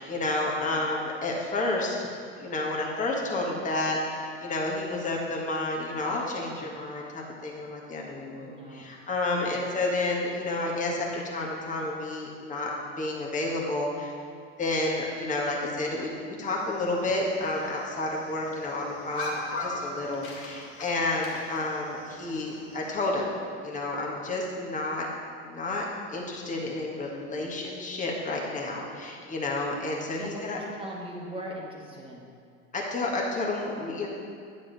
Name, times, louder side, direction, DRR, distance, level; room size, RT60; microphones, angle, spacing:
voice 1, 0.0-2.1 2.4-14.1 14.6-16.1 16.4-23.3 23.6-25.1 25.4-30.6 32.7-34.1, left 2 dB, 20° left, -2 dB, 1.6 m, -30 dB
voice 2, 8.4-8.9 9.3-9.5 30.2-32.2, right 1 dB, 15° right, -3 dB, 1.7 m, -40 dB
sound 1, 16.6-23.0, left 2 dB, 65° left, 2.5 m, -40 dB
9.6 x 7.4 x 4.1 m, 2.3 s
hypercardioid pair, 100°, 37 cm